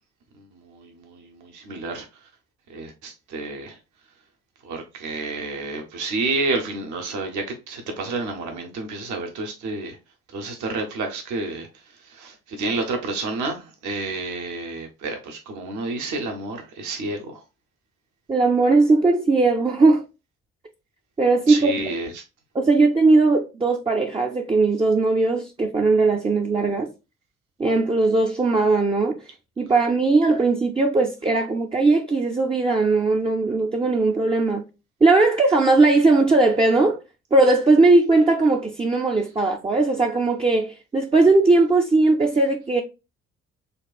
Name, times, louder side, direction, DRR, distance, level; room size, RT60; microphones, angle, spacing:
voice 1, 0.4-2.1 2.7-3.8 4.6-10.0 10.3-11.7 12.0-17.4 21.5-22.2, right 3 dB, 55° right, 1.0 m, -30 dB
voice 2, 18.3-20.0 21.2-21.7 22.5-26.9 27.6-29.2 29.6-34.6 35.0-37.0 37.3-42.8, right 3 dB, 15° right, 0.6 m, -19 dB
6.6 x 2.4 x 2.3 m
figure-of-eight pair, 45°, 36 cm